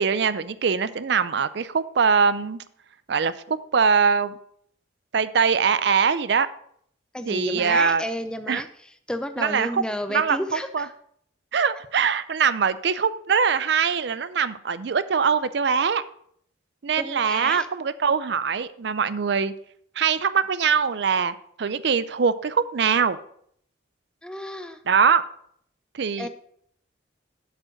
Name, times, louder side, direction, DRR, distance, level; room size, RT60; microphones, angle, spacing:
voice 1, 0.0-2.6 3.1-4.3 5.1-6.5 7.3-8.0 8.5-8.6 9.4-9.8 10.1-10.8 11.5-16.0 16.8-19.5 20.0-23.2 24.9-25.2 25.9-26.3, right 6 dB, 60° right, 15 dB, 0.5 m, -22 dB
voice 2, 7.1-10.9 17.0-17.7 24.2-24.8 26.2-26.3, left 1 dB, 5° left, 8 dB, 0.5 m, -32 dB
7.6 x 5.1 x 6.4 m, 0.66 s
head